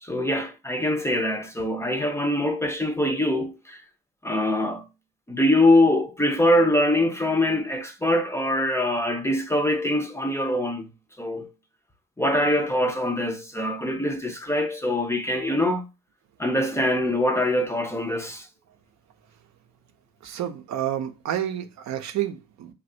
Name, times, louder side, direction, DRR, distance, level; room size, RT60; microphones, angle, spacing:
voice 1, 0.0-3.8 4.2-4.9 5.3-10.9 11.2-11.5 12.2-15.9 16.4-18.5, left 1 dB, 10° left, 0.5 m, -23 dB
voice 2, 20.2-22.7, right 11 dB, 65° right, 0.6 m, -29 dB
3.1 x 2.3 x 2.7 m
cardioid pair, 90°, 30 cm